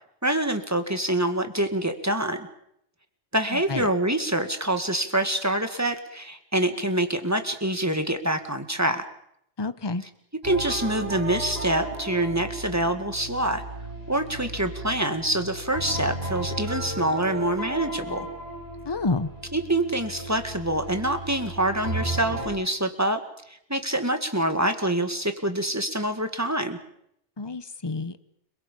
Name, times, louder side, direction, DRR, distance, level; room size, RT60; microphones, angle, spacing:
voice 1, 0.2-2.5 3.3-9.1 10.4-13.6 14.1-18.3 19.5-23.2 23.5-26.8, right 1 dB, 15° right, 8 dB, 2.1 m, -26 dB
voice 2, 3.5-3.9 9.6-10.0 18.9-19.3 27.4-28.2, left 3 dB, 25° left, 13 dB, 1.0 m, -29 dB
sound 1, 10.4-22.5, right 1 dB, 60° right, 6.3 m, -35 dB
30.0 x 22.0 x 5.5 m, 0.72 s
omnidirectional pair, 1.2 m